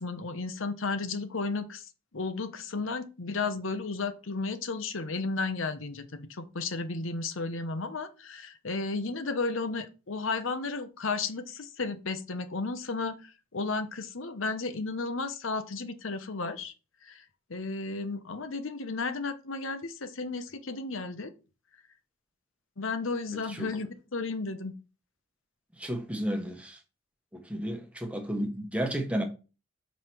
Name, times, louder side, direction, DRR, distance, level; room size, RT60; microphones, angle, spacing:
voice 1, 0.0-1.9 2.1-16.7 17.0-17.2 17.5-21.3 22.8-24.7, left 3 dB, 75° left, 0.9 m, -33 dB
voice 2, 25.8-26.8 27.3-29.2, equal, 5° right, 1.2 m, -32 dB
5.6 x 4.9 x 6.0 m
head